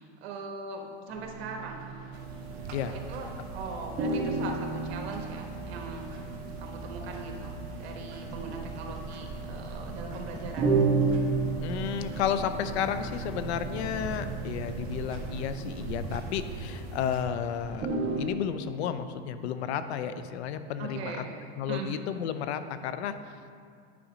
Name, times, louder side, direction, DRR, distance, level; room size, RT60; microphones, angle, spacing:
voice 1, 0.0-1.9 2.9-6.1 6.6-10.8 20.8-21.9, right 4 dB, 70° right, 2 dB, 1.2 m, -40 dB
sound 1, 1.1-3.3 3.6-3.7 4.0-17.2 17.5-18.3, right 4 dB, 30° right, 1.1 m, -33 dB
sound 2, 2.1-17.2, right 3 dB, 55° right, 1.1 m, -41 dB
sound 3, 8.3-16.5, right 3 dB, ahead, 1.0 m, -43 dB
voice 2, 11.6-17.9 18.2-21.3 21.6-23.1, left 8 dB, 85° left, 11 dB, 0.6 m, -32 dB
9.1 x 3.8 x 5.0 m, 2.3 s
supercardioid pair, 155°, 32 cm